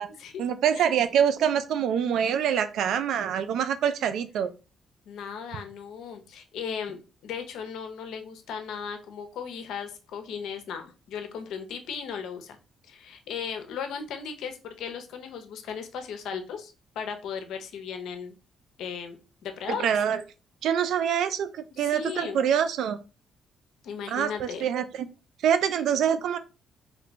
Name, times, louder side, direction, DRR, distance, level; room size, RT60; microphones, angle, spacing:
voice 1, 0.4-4.5 19.8-20.2 20.6-23.0 24.1-25.1 25.4-26.4, right 8 dB, 75° right, 11 dB, 0.4 m, -25 dB
voice 2, 5.1-12.6 12.9-18.4 18.8-19.2 19.4-20.0 21.8-22.4 23.8-24.7, left 7 dB, 80° left, 6 dB, 0.6 m, -36 dB
3.1 x 2.2 x 3.9 m, 0.32 s
cardioid pair, 90°, 0 cm